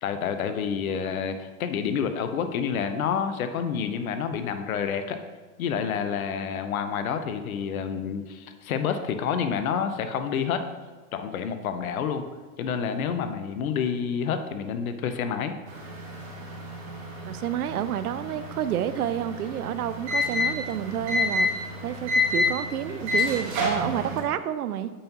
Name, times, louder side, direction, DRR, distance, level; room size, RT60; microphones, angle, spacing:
voice 1, 0.0-5.2 5.6-10.7 11.1-12.2 12.6-15.6, left 7 dB, 65° left, 9 dB, 0.8 m, -28 dB
sound 1, 15.7-24.2, left 2 dB, 40° right, 1.8 m, -29 dB
voice 2, 17.2-21.5 21.8-24.9, right 10 dB, 75° right, 12 dB, 0.6 m, -29 dB
8.5 x 5.5 x 2.8 m, 1.4 s
hypercardioid pair, 100°, 45 cm